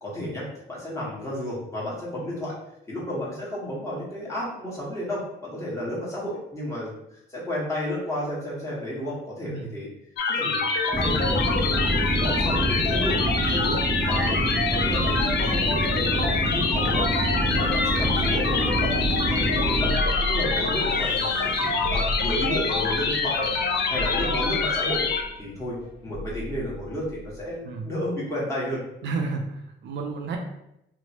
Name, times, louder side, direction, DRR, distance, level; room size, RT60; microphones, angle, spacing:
voice 1, 0.0-2.5 2.9-9.9 10.3-10.7 11.0-11.4 11.7-18.9 19.3-25.1 25.4-28.8, left 1 dB, 15° left, -7 dB, 1.2 m, -32 dB
sound 1, 10.2-25.2, left 4 dB, 60° left, 0.4 m, -25 dB
sound 2, 10.9-20.0, right 1 dB, 5° right, 0.4 m, -26 dB
sound 3, 18.1-27.5, equal, 75° left, 0.9 m, -34 dB
voice 2, 29.0-30.4, right 4 dB, 65° right, 3 dB, 0.4 m, -31 dB
3.0 x 2.1 x 2.8 m, 0.82 s
cardioid pair, 90°, 20 cm